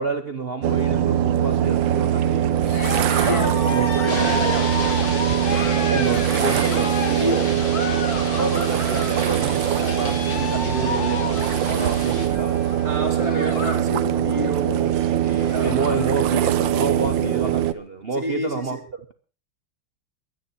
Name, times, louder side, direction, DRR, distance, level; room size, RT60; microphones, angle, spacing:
voice 1, 0.0-2.7 3.2-4.6 5.9-7.0 8.4-12.6 15.2-19.1, right 4 dB, 45° right, 0.8 m, -29 dB
sound 1, 0.6-17.7, right 10 dB, 70° right, 1.5 m, -22 dB
Cheering, 2.6-13.9 14.2-14.6 15.0-15.1 15.3-16.1, left 3 dB, 50° left, 2.1 m, -31 dB
voice 2, 3.8-4.7 7.0-7.8 12.8-15.1 15.5-15.7 18.1-18.8, equal, 10° right, 2.7 m, -29 dB
sound 2, 4.1-12.3, left 2 dB, 85° left, 5.3 m, -34 dB
23.0 x 10.0 x 4.2 m
omnidirectional pair, 2.3 m